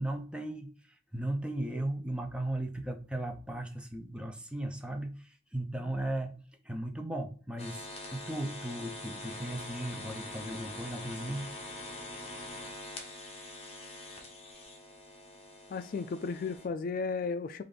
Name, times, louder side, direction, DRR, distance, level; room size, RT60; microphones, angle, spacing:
voice 1, 0.0-11.5, right 1 dB, 5° right, 0.5 m, -37 dB
sound 1, 7.6-16.7, left 2 dB, 35° left, 0.9 m, -44 dB
voice 2, 15.7-17.6, left 4 dB, 50° left, 0.3 m, -34 dB
5.1 x 2.5 x 3.7 m
head